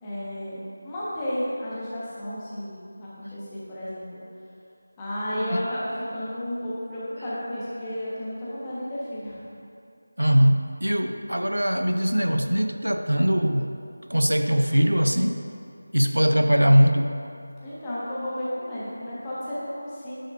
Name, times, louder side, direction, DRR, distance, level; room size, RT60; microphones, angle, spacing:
voice 1, 0.0-0.6 0.8-4.2 5.0-9.4 17.6-20.1, equal, 15° left, -10 dB, 1.2 m, -32 dB
voice 2, 10.2-13.7 14.1-15.4 15.9-17.1, equal, 85° right, 7 dB, 0.4 m, -21 dB
9.8 x 5.0 x 2.6 m, 2.5 s
figure-of-eight pair, 165°, 0 cm